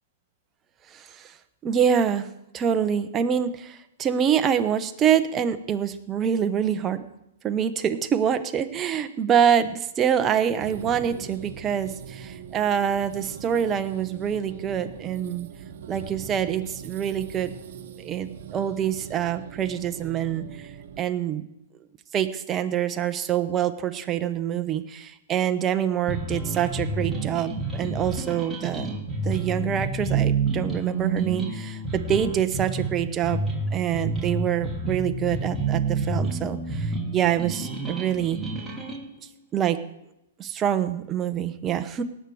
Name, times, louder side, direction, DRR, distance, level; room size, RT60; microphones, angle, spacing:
voice 1, 0.9-1.3 1.6-2.3 2.5-7.0 7.4-15.5 15.9-17.5 18.0-20.5 21.0-21.4 22.1-28.9 29.2-33.4 33.7-38.4 39.5-39.8 40.4-42.0, right 9 dB, 25° right, 9 dB, 1.0 m, -25 dB
sound 1, 10.6-21.0, right 7 dB, 60° right, 1.3 m, -41 dB
sound 2, 26.1-39.0, right 3 dB, 5° right, 3.0 m, -29 dB
18.0 x 7.7 x 4.9 m, 0.85 s
hypercardioid pair, 130°, 0 cm